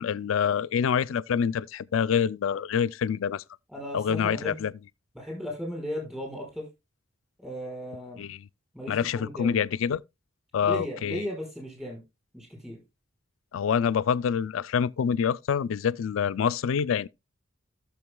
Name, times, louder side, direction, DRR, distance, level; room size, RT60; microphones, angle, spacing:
voice 1, 0.0-3.4 3.9-4.7 8.2-8.4 8.9-10.0 10.5-11.2 13.5-17.1, left 7 dB, 85° left, 0.4 m, -26 dB
voice 2, 3.7-4.7 5.1-6.6 7.4-8.3 8.7-9.7 10.6-12.0 12.3-12.8, equal, 5° right, 5.1 m, -36 dB
15.5 x 6.8 x 2.3 m
head